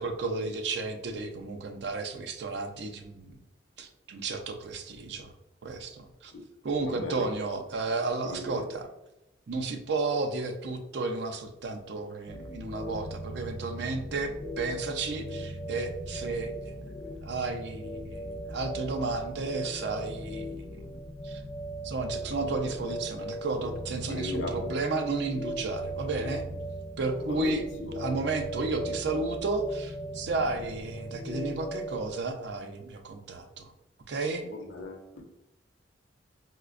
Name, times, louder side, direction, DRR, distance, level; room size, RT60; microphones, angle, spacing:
voice 1, 0.0-3.4 3.8-5.3 5.6-6.3 6.6-8.9 9.5-20.9 21.2-21.4 21.8-26.4 27.0-27.6 27.9-33.7 34.1-34.4, right 3 dB, 65° right, 6 dB, 0.4 m, -33 dB
voice 2, 6.8-7.3 8.2-8.6 24.1-24.8 27.2-27.9 34.4-35.2, left 2 dB, 80° left, 3 dB, 0.6 m, -37 dB
sound 1, 12.3-32.1, right 1 dB, 25° left, 0.3 m, -38 dB
4.8 x 2.1 x 2.4 m, 0.93 s
head